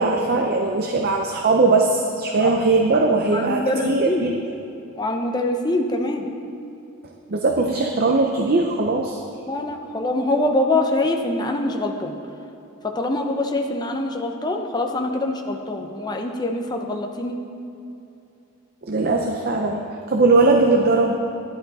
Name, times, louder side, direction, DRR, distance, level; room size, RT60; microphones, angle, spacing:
voice 1, 0.0-4.3 7.3-9.2 18.8-19.8 20.1-21.2, right 3 dB, 45° right, 2 dB, 0.6 m, -19 dB
voice 2, 3.3-4.3 5.0-6.3 9.5-12.1 12.9-17.4, left 2 dB, 20° left, 3 dB, 0.7 m, -24 dB
12.0 x 10.5 x 4.1 m, 2.8 s
head